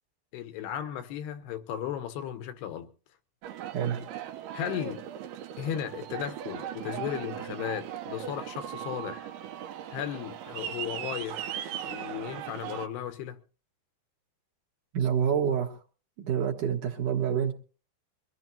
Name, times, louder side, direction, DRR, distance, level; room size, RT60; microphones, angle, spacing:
voice 1, 0.3-2.9 4.5-5.1 5.6-9.3 9.9-11.4 11.9-13.4, left 10 dB, 80° left, 3.1 m, -35 dB
Aircraft, 3.4-12.9, right 10 dB, 75° right, 2.7 m, -38 dB
voice 2, 14.9-15.8 16.2-17.5, right 8 dB, 60° right, 2.7 m, -27 dB
23.5 x 14.5 x 2.8 m
omnidirectional pair, 4.7 m